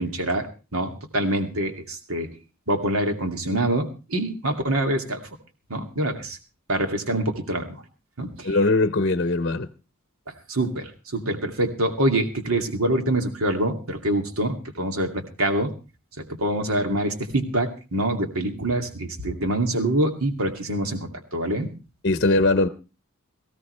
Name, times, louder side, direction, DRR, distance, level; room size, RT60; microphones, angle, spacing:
voice 1, 0.0-2.3 2.7-5.2 5.7-6.4 6.7-7.8 8.2-8.6 10.3-15.7 16.3-21.7, right 1 dB, 85° right, 5 dB, 2.5 m, -25 dB
voice 2, 8.4-9.7 22.0-22.7, left 2 dB, 50° left, 11 dB, 0.8 m, -20 dB
19.0 x 15.5 x 3.3 m, 0.31 s
head